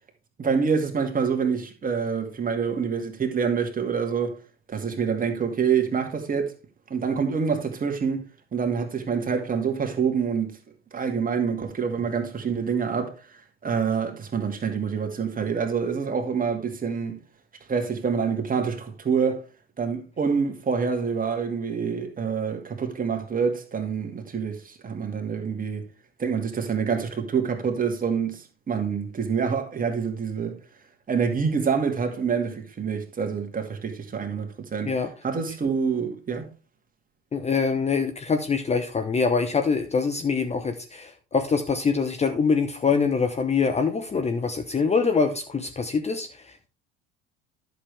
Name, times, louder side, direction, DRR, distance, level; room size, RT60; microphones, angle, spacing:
voice 1, 0.4-4.4 4.7-6.5 6.9-8.2 8.5-10.6 10.9-17.2 17.7-19.4 19.8-25.9 26.2-30.6 31.1-34.9 35.2-36.5, right 6 dB, 25° right, 2.2 m, -26 dB
voice 2, 37.3-46.7, left 5 dB, 20° left, 1.0 m, -24 dB
11.0 x 6.9 x 3.4 m
figure-of-eight pair, 70°, 33 cm